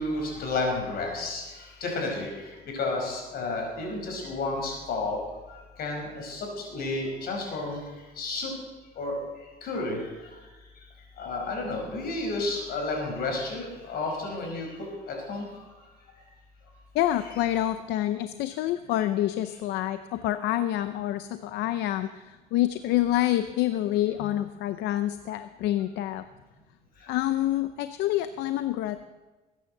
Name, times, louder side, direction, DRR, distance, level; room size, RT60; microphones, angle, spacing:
voice 1, 0.0-5.2 5.5-7.8 8.2-8.5 9.0-9.2 9.6-10.3 11.2-14.7 15.1-15.7, left 2 dB, 65° left, 2 dB, 5.4 m, -31 dB
voice 2, 16.9-26.2 27.1-29.0, left 13 dB, 85° left, 11 dB, 0.6 m, -27 dB
22.0 x 9.4 x 6.6 m, 1.2 s
cardioid pair, 110°, 17 cm